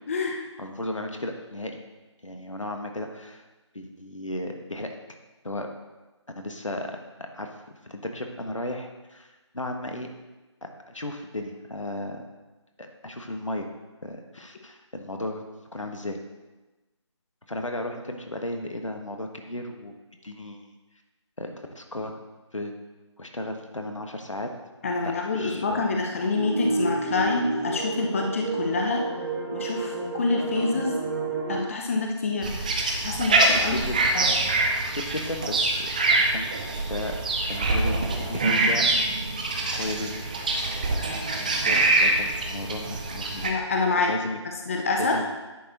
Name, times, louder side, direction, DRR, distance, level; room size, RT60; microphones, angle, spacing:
voice 1, 0.0-0.4 24.8-29.1 29.5-30.9 31.5-32.6 33.0-33.8 34.1-34.2 43.4-44.1 44.7-45.2, left 3 dB, 25° left, 2 dB, 0.8 m, -26 dB
voice 2, 0.6-1.8 2.2-3.4 3.7-4.9 5.4-5.7 6.3-7.0 7.3-7.5 7.8-10.1 10.9-12.2 12.8-13.7 14.0-15.4 15.7-16.2 17.5-19.9 20.2-20.7 21.4-22.1 22.5-22.7 23.2-24.5 25.0-25.8 33.7-34.0 34.9-35.8 36.2-36.6 36.9-37.2 37.5-38.8 39.6-40.1 41.0-43.4 43.9-44.4 45.0-45.3, left 1 dB, 85° left, 4 dB, 1.4 m, -34 dB
sound 1, 26.3-31.6, right 2 dB, 35° right, 1.7 m, -30 dB
sound 2, 32.4-43.5, right 2 dB, 15° right, 0.5 m, -25 dB
10.0 x 6.6 x 4.1 m, 1.1 s
figure-of-eight pair, 160°, 16 cm